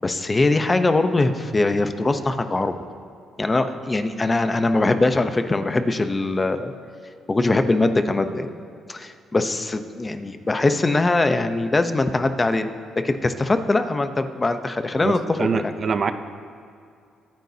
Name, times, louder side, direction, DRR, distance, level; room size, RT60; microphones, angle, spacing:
voice 1, 0.0-2.7 3.4-6.7 7.3-8.5 8.9-12.7 13.0-15.7, left 2 dB, 25° left, 8 dB, 0.8 m, -22 dB
voice 2, 15.0-16.1, right 5 dB, 45° right, 10 dB, 0.7 m, -24 dB
23.5 x 9.2 x 2.9 m, 2.4 s
cardioid pair, 90°, 0 cm